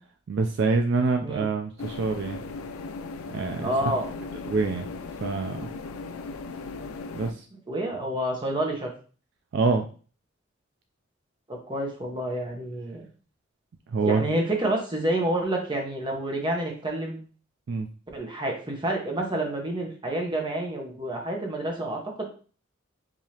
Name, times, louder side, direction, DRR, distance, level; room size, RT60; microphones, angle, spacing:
voice 1, 0.3-2.4 3.3-3.7 4.4-4.9 5.2-5.7 7.1-7.4 9.5-9.9 13.9-14.2 17.7-17.9, right 4 dB, 55° right, 5 dB, 0.3 m, -25 dB
sound 1, 1.8-7.3, left 3 dB, 85° left, 0.4 m, -37 dB
voice 2, 3.6-4.1 7.7-8.9 11.5-13.1 14.0-17.2 18.1-22.2, right 1 dB, 20° right, 1 dB, 0.9 m, -29 dB
4.8 x 2.8 x 2.8 m, 0.39 s
head